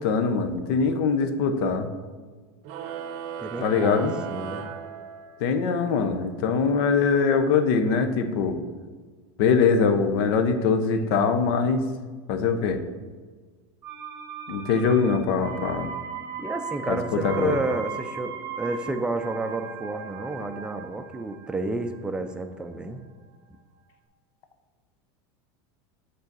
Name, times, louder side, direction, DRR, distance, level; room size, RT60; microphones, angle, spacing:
voice 1, 0.0-1.9 3.6-4.2 5.4-8.6 9.4-11.8 12.3-12.8 14.5-15.9 16.9-17.6, left 5 dB, 65° left, 7 dB, 0.8 m, -23 dB
sound 1, 2.6-5.6, right 7 dB, 55° right, 0.7 m, -36 dB
voice 2, 3.4-4.7 16.4-23.0, right 2 dB, 5° right, 7 dB, 0.4 m, -31 dB
sound 2, 13.8-23.5 23.8-23.9, right 6 dB, 30° right, 0.9 m, -38 dB
7.9 x 3.9 x 4.0 m, 1.4 s
supercardioid pair, 135°, 13 cm